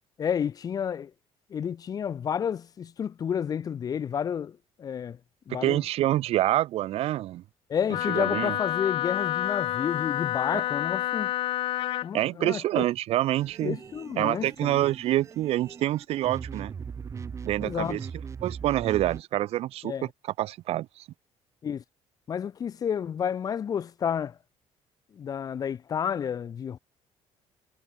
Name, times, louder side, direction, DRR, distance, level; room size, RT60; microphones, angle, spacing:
voice 1, 0.2-1.1 1.5-5.2 5.5-5.8 7.7-11.3 12.0-12.9 13.6-14.8 17.6-18.0 19.8-20.1 21.6-21.8 22.3-24.3 25.2-26.8, left 8 dB, 35° left, 2.2 m, -30 dB
voice 2, 5.5-7.4 8.1-8.5 10.5-10.6 12.1-13.8 14.2-16.7 17.4-18.0 18.4-19.9 20.4-21.0, right 14 dB, 65° right, 2.7 m, -27 dB
Wind instrument woodwind instrument, 7.9-12.1, left 14 dB, 55° left, 0.4 m, -29 dB
sound 1, 13.3-19.2, right 6 dB, 25° right, 3.6 m, -40 dB
cardioid pair, 175°, 11 cm